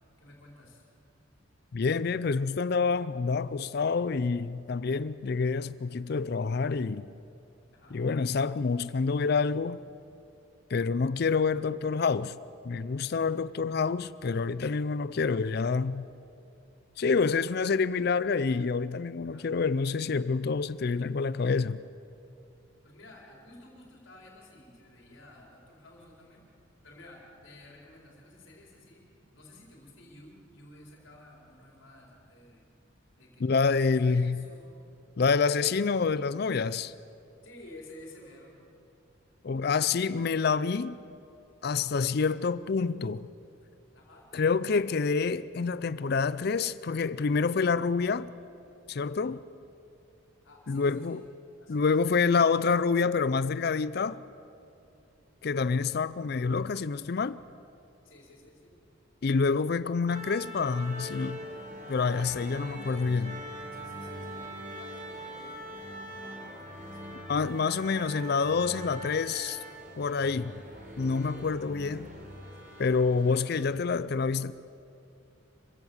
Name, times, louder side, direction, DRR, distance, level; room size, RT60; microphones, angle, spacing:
voice 1, 0.2-0.9 7.7-8.0 19.2-19.5 22.8-26.5 26.8-32.6 33.2-34.9 37.4-38.6 43.9-44.3 50.4-51.2 51.6-52.0 58.0-58.8 63.7-68.2, left 1 dB, 80° left, 4.5 m, -53 dB
voice 2, 1.7-7.1 7.9-9.8 10.7-12.4 12.6-16.1 17.0-21.8 33.4-34.4 35.2-36.9 39.4-41.0 41.6-43.3 44.3-48.3 48.9-49.4 50.7-51.2 51.7-54.2 55.4-57.4 59.2-61.4 61.9-63.4 67.3-69.6 70.0-70.6 71.0-72.1 72.8-74.5, left 4 dB, 55° left, 0.4 m, -27 dB
sound 1, 60.1-73.8, equal, 45° right, 3.7 m, -43 dB
26.0 x 16.0 x 7.2 m
head